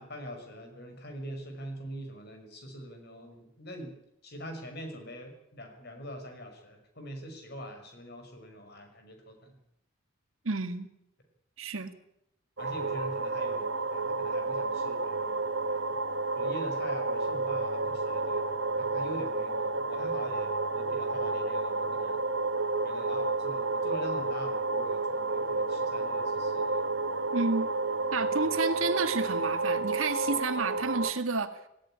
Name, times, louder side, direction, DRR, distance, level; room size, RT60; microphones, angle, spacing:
voice 1, 0.0-3.9 4.2-9.5 12.6-16.0 16.3-22.2 22.8-26.9, equal, 50° left, 6 dB, 5.5 m, -43 dB
voice 2, 10.4-10.9 11.6-11.9 27.3-27.7 28.1-31.6, right 3 dB, 85° right, 8 dB, 1.8 m, -30 dB
sound 1, 12.6-31.1, right 3 dB, 60° right, 1.1 m, -31 dB
18.0 x 16.5 x 10.0 m, 0.80 s
head